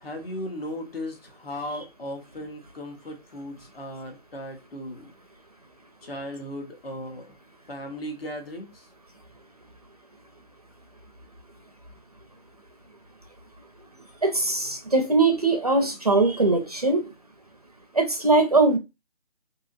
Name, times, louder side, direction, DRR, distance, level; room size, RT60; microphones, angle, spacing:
voice 1, 0.0-5.1 6.0-7.3 7.7-8.9, left 1 dB, 65° left, 1.2 m, -36 dB
voice 2, 14.2-17.1 17.9-18.8, right 3 dB, 40° right, 0.4 m, -21 dB
2.8 x 2.7 x 2.4 m
figure-of-eight pair, 160°, 32 cm